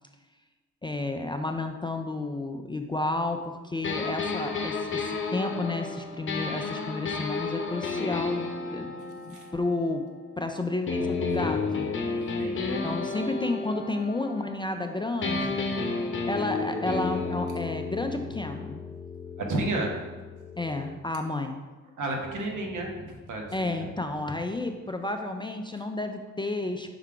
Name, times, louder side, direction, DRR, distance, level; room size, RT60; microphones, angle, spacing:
voice 1, 0.8-8.9 9.2-10.0 10.4-11.9 12.8-15.6 16.2-18.8 20.6-21.6 23.5-26.9, left 2 dB, 15° left, 5 dB, 0.3 m, -31 dB
sound 1, 3.8-10.4 10.9-14.9 15.2-21.0, left 4 dB, 40° left, 0.8 m, -32 dB
voice 2, 19.4-19.9 22.0-23.8, right 2 dB, 70° right, 1 dB, 1.2 m, -31 dB
5.5 x 3.7 x 4.7 m, 1.3 s
cardioid pair, 85°, 32 cm